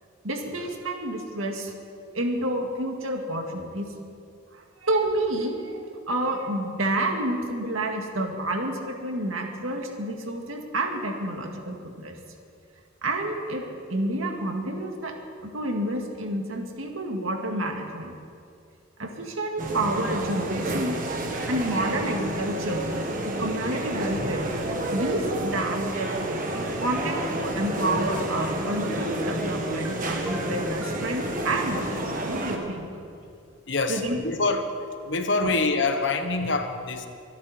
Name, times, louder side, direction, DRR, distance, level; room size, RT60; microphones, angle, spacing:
voice 1, 0.2-1.7 2.1-3.9 4.5-12.1 13.0-13.6 13.9-15.1 15.4-18.1 19.0-21.0 21.5-24.5 24.9-26.2 26.8-32.9 33.9-34.2 35.4-35.5, right 1 dB, 90° right, 2 dB, 2.2 m, -29 dB
sound 1, 19.6-32.6, right 1 dB, 40° right, 1.6 m, -30 dB
sound 2, 26.9-27.3 29.3-29.9 30.2-31.0, equal, 10° right, 1.5 m, -38 dB
voice 2, 33.7-34.7 35.0-37.1, left 3 dB, 60° left, 7 dB, 1.2 m, -25 dB
24.5 x 11.5 x 4.4 m, 2.4 s
head